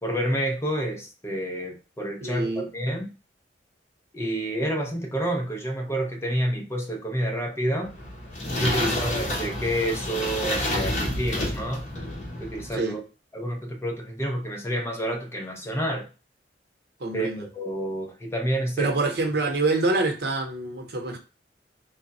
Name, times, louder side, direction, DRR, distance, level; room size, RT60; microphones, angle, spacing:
voice 1, 0.0-3.1 4.1-7.9 8.6-11.9 12.4-13.0 13.3-16.1 17.1-18.9, right 1 dB, 15° left, 0.7 m, -29 dB
voice 2, 2.2-2.7 8.7-9.0 12.7-13.0 17.0-17.5 18.8-21.2, right 2 dB, 65° right, 0.9 m, -26 dB
sound 1, 7.8-12.8, left 1 dB, 45° left, 1.0 m, -29 dB
3.4 x 2.3 x 4.0 m
head